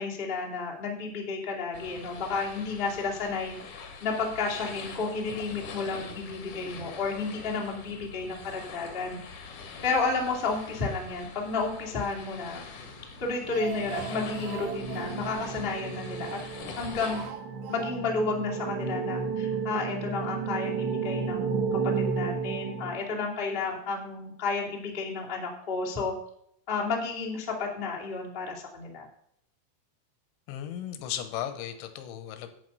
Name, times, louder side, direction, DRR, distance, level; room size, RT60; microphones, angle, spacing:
voice 1, 0.0-3.5 4.0-9.5 9.8-12.6 13.2-16.4 16.8-17.2 17.7-26.1 26.7-29.1, left 4 dB, 30° left, -3 dB, 0.9 m, -32 dB
sound 1, 1.7-17.3, left 5 dB, 60° left, 2.2 m, -44 dB
sound 2, 12.9-23.6, right 5 dB, 55° right, 2.0 m, -33 dB
Speech, 13.2-16.7 17.1-18.3 18.5-18.6 18.9-19.0, right 9 dB, 85° right, 2.3 m, -42 dB
voice 2, 30.5-32.5, left 10 dB, 75° left, 9 dB, 3.0 m, -36 dB
11.0 x 8.8 x 5.4 m, 0.71 s
omnidirectional pair, 5.8 m